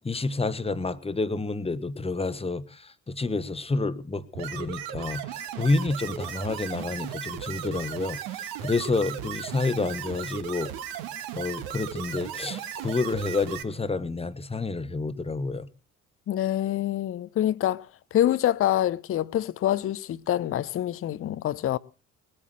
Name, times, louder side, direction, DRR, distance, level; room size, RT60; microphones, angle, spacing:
voice 1, 0.0-10.7 11.3-15.7, left 3 dB, 15° left, 1.2 m, -29 dB
sound 1, 4.3-13.6, right 10 dB, 60° right, 1.7 m, -36 dB
voice 2, 16.3-17.9 18.1-21.8, left 12 dB, 35° left, 0.7 m, -26 dB
21.0 x 8.7 x 6.3 m
figure-of-eight pair, 50°, 40 cm